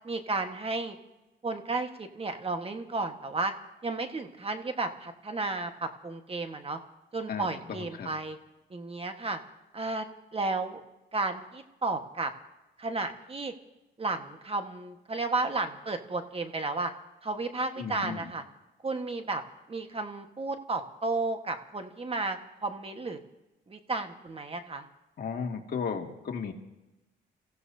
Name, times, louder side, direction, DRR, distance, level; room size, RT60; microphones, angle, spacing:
voice 1, 0.0-1.0 1.4-3.5 3.8-6.8 7.1-8.4 8.7-9.4 9.7-10.1 10.3-10.8 11.1-12.3 12.8-13.5 14.0-16.9 17.2-18.4 18.8-19.4 19.7-23.2 23.7-24.8, right 3 dB, 30° right, 6 dB, 1.4 m, -33 dB
voice 2, 7.3-8.1 17.8-18.3 25.2-26.5, left 6 dB, 50° left, 2 dB, 2.1 m, -35 dB
29.5 x 15.5 x 2.8 m, 1.0 s
cardioid pair, 90°, 20 cm